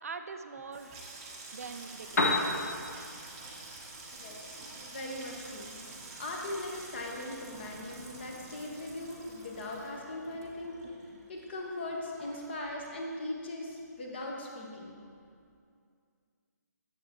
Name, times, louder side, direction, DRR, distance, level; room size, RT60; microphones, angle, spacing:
voice 1, 0.0-1.0 1.5-2.6, right 5 dB, 55° right, 8 dB, 0.4 m, -43 dB
Water tap faucet / Sink (filling or washing), 0.6-13.4 13.7-14.4 14.6-15.0, right 3 dB, 20° right, 0.8 m, -48 dB
Piano, 1.9-9.9, left 2 dB, 55° left, 1.2 m, -38 dB
voice 2, 4.9-5.8 6.2-10.8 11.3-15.0, left 1 dB, 35° left, -1 dB, 1.2 m, -39 dB
9.1 x 7.4 x 3.0 m, 2.3 s
hypercardioid pair, 170°, 10 cm